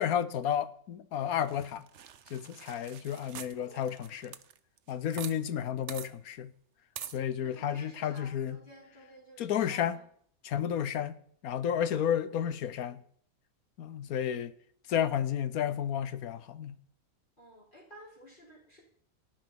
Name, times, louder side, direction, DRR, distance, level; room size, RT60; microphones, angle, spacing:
voice 1, 0.0-1.9 2.3-4.4 4.9-6.5 7.1-8.6 9.4-10.0 10.4-11.1 11.4-13.0 13.8-14.5 14.9-16.8, left 9 dB, 85° left, 1.3 m, -32 dB
sound 1, 1.4-5.4 5.6-5.7 5.9-6.1 7.0-7.2, right 9 dB, 60° right, 1.0 m, -45 dB
voice 2, 7.4-10.1 11.9-13.0 17.4-18.8, equal, 35° left, 3.7 m, -54 dB
18.0 x 10.5 x 5.3 m
omnidirectional pair, 1.5 m